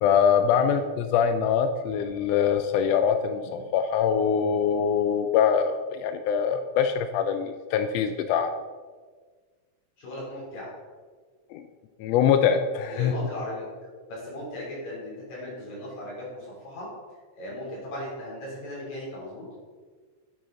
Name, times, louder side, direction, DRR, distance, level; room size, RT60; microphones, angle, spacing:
voice 1, 0.0-3.4 3.7-8.6 11.5-11.6 12.0-13.1, left 7 dB, 90° left, 8 dB, 1.4 m, -23 dB
voice 2, 10.0-10.7 12.9-13.7 14.1-16.9 17.4-19.4, left 1 dB, 70° left, -6 dB, 4.6 m, -37 dB
9.0 x 7.8 x 3.8 m, 1.5 s
omnidirectional pair, 3.4 m